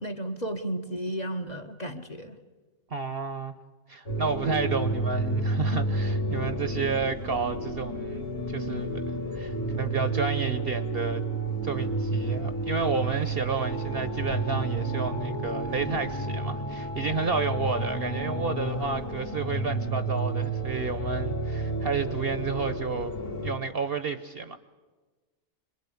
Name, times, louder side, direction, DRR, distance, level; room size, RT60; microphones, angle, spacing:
voice 1, 0.0-2.4, right 1 dB, 30° left, 5 dB, 1.2 m, -33 dB
voice 2, 2.9-3.6 3.9-9.0 9.3-11.2 11.6-23.1 23.4-24.6, right 5 dB, 45° right, 10 dB, 1.0 m, -31 dB
sound 1, 4.1-23.5, right 2 dB, 60° left, 3.4 m, -31 dB
27.0 x 21.0 x 8.5 m, 1.3 s
omnidirectional pair, 1.5 m